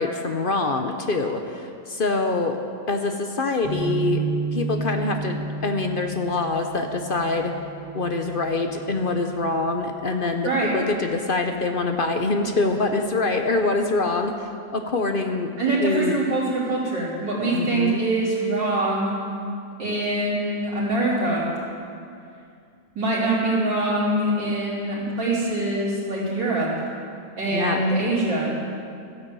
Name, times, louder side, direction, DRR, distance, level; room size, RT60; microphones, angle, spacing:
voice 1, 0.0-2.6 2.9-4.2 4.5-7.5 7.9-15.5 15.8-16.2 17.5-18.0 27.5-27.8, left 3 dB, 50° left, 5 dB, 0.6 m, -25 dB
sound 1, 3.6-10.1, right 4 dB, 70° left, 4.7 m, -32 dB
voice 2, 10.4-10.8 15.6-19.1 19.8-21.5 23.0-26.7 27.4-28.5, right 2 dB, 85° right, -9 dB, 4.4 m, -24 dB
13.0 x 11.0 x 7.6 m, 2.4 s
omnidirectional pair, 1.9 m